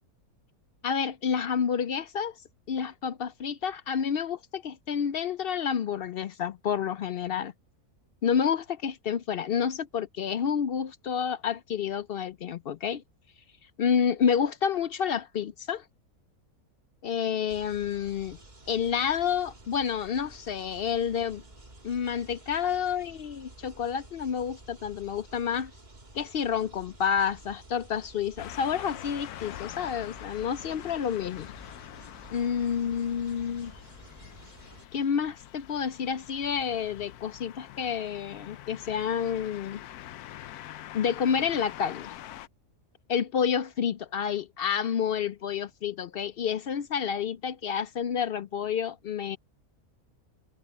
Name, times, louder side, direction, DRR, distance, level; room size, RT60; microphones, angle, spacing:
voice 1, 0.8-2.3 2.7-7.5 8.2-13.0 13.8-15.8 17.0-18.4 18.7-21.4 21.8-25.7 26.1-31.5 32.3-33.7 34.9-39.8 40.9-42.1 43.1-49.4, left 7 dB, 70° left, 0.5 m, -29 dB
sound 1, 17.5-34.9, right 2 dB, 30° right, 2.5 m, -52 dB
sound 2, 28.4-42.5, left 13 dB, 85° left, 1.1 m, -45 dB
omnidirectional pair, 1.6 m